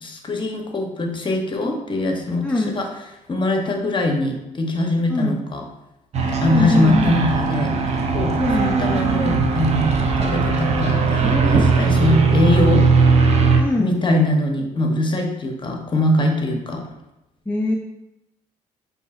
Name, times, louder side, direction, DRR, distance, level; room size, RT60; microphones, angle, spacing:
voice 1, 0.0-2.9 3.3-5.6 6.3-8.3 8.6-12.8 13.8-16.8, left 1 dB, 35° left, 2 dB, 0.7 m, -22 dB
voice 2, 2.4-2.8 5.1-5.4 6.4-7.2 8.4-8.8 13.6-14.0 17.5-17.8, left 2 dB, 10° left, -1 dB, 0.4 m, -22 dB
sound 1, 6.1-13.6, right 4 dB, 45° right, 0.5 m, -19 dB
5.3 x 2.7 x 2.4 m, 0.92 s
cardioid pair, 80°, 15 cm